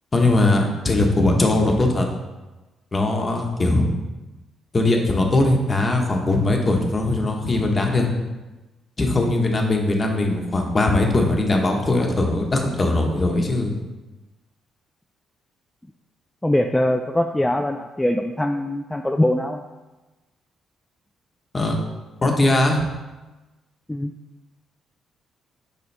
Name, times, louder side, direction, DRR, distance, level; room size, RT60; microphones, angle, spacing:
voice 1, 0.1-2.1 2.9-3.9 4.7-8.1 9.0-13.7 21.5-21.8 22.2-22.8, left 2 dB, 30° left, 2 dB, 1.1 m, -20 dB
voice 2, 16.4-19.6 23.9-24.1, left 1 dB, 10° left, 4 dB, 0.3 m, -22 dB
7.0 x 4.9 x 3.3 m, 1.1 s
cardioid pair, 90°, 0 cm